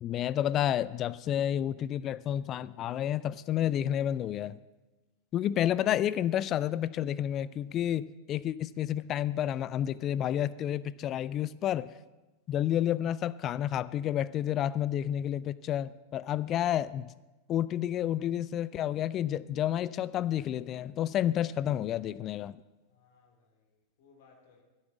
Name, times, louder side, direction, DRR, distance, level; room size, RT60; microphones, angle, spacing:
voice 1, 0.0-4.6 5.3-11.9 12.5-17.1 17.5-22.6, left 11 dB, 30° left, 18 dB, 0.3 m, -30 dB
voice 2, 22.9-24.6, left 5 dB, 50° left, 3 dB, 2.8 m, -63 dB
10.5 x 9.6 x 7.2 m, 1.1 s
figure-of-eight pair, 90°, 0 cm